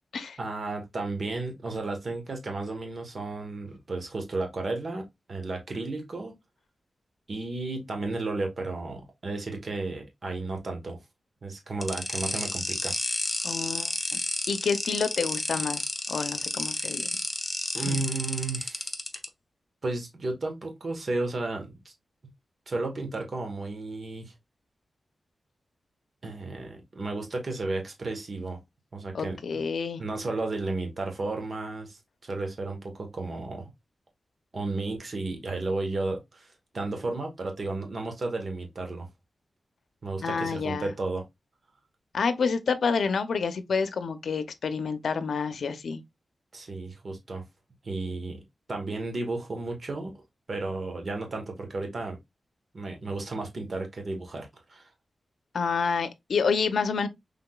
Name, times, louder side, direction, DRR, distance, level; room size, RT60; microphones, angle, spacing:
voice 1, 0.4-6.3 7.3-11.0 11.4-13.0 17.7-18.9 19.8-21.9 22.7-24.3 26.2-28.6 28.9-29.4 30.0-33.7 34.5-39.1 40.0-41.2 46.5-47.4 47.8-48.4 48.7-50.1 50.5-52.2 52.7-54.9, right 2 dB, 40° right, 1.3 m, -33 dB
sound 1, 11.8-19.3, left 2 dB, 15° left, 0.7 m, -31 dB
voice 2, 13.4-14.2 14.5-17.1 17.7-18.0 29.1-30.0 40.2-40.9 42.1-46.0 55.5-57.1, left 5 dB, 75° left, 0.6 m, -28 dB
5.8 x 3.6 x 2.3 m
wide cardioid pair, 180°, 0 cm